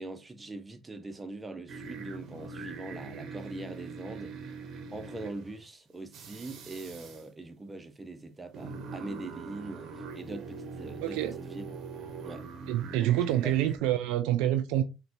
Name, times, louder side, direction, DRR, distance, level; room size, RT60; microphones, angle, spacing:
voice 1, 0.0-4.6 4.9-11.7 12.2-12.5 13.0-13.2 13.4-13.5, right 2 dB, 20° right, 0.6 m, -42 dB
sound 1, 1.7-5.6 6.1-7.2 8.5-13.8, right 4 dB, 60° right, 0.7 m, -42 dB
voice 2, 11.0-11.3 12.7-14.8, right 12 dB, 80° right, 0.3 m, -27 dB
3.9 x 2.2 x 2.5 m
supercardioid pair, 70°, 0 cm